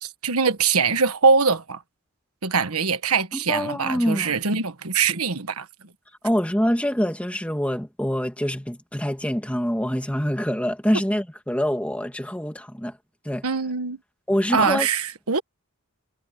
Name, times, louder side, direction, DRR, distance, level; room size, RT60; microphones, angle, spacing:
voice 1, 0.0-1.8 2.4-5.7 13.4-14.0 14.5-15.4, right 5 dB, 85° right, 1.4 m, -22 dB
voice 2, 3.3-4.3 6.2-12.9 13.2-13.4 14.3-14.9, equal, 5° left, 2.3 m, -25 dB
head